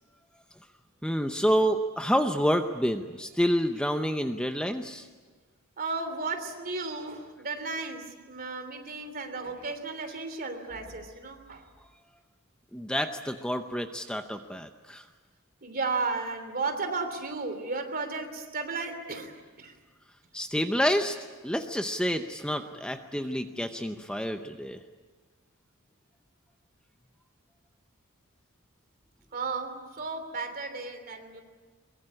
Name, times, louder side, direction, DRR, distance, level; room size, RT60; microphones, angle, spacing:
voice 1, 1.0-5.1 12.7-15.0 20.3-21.2 21.4-24.8, equal, 5° left, 7 dB, 0.7 m, -28 dB
voice 2, 5.8-11.6 15.6-19.7 29.3-31.4, right 3 dB, 40° right, 7 dB, 3.1 m, -34 dB
23.0 x 22.0 x 9.7 m, 1.4 s
head